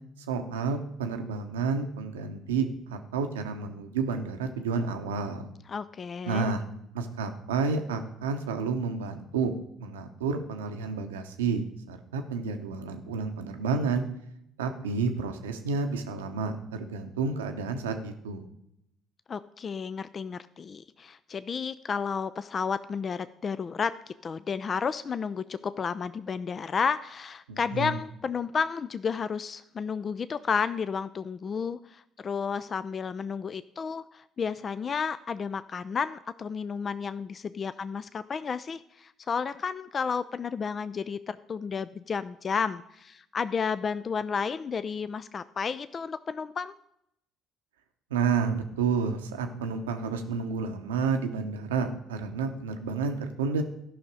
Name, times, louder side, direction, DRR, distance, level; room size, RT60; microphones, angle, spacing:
voice 1, 0.3-5.5 6.3-6.6 6.9-9.5 9.8-11.6 11.9-14.0 14.6-18.4 27.5-28.0 48.1-53.6, right 5 dB, 90° right, 7 dB, 0.8 m, -30 dB
voice 2, 5.7-6.5 19.3-46.7, left 6 dB, 40° left, 14 dB, 0.3 m, -32 dB
13.5 x 5.7 x 4.8 m, 0.78 s
hypercardioid pair, 55°, 0 cm